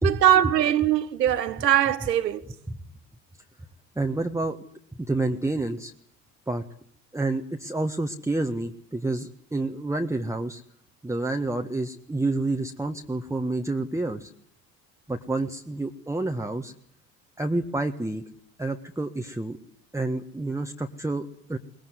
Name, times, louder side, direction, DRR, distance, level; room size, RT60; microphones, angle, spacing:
voice 1, 0.0-2.4, right 11 dB, 75° right, 1.7 m, -21 dB
voice 2, 3.9-4.6 4.9-5.9 6.5-6.6 7.1-10.6 11.0-14.3 15.1-16.7 17.4-18.2 18.6-19.6 19.9-21.6, right 2 dB, 5° right, 1.6 m, -28 dB
22.5 x 21.0 x 9.7 m
figure-of-eight pair, 65°, 49 cm